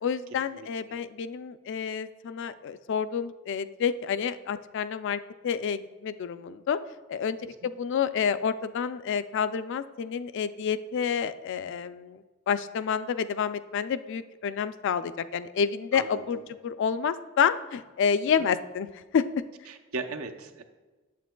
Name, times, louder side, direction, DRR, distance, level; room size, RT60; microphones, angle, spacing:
voice 1, 0.0-6.8 7.1-19.2, left 7 dB, 60° left, 13 dB, 0.3 m, -29 dB
voice 2, 0.5-1.0 7.4-7.5 15.9-16.2 18.4-18.5 19.7-20.6, right 3 dB, 85° right, 5 dB, 0.6 m, -38 dB
8.4 x 7.5 x 2.2 m, 1.3 s
head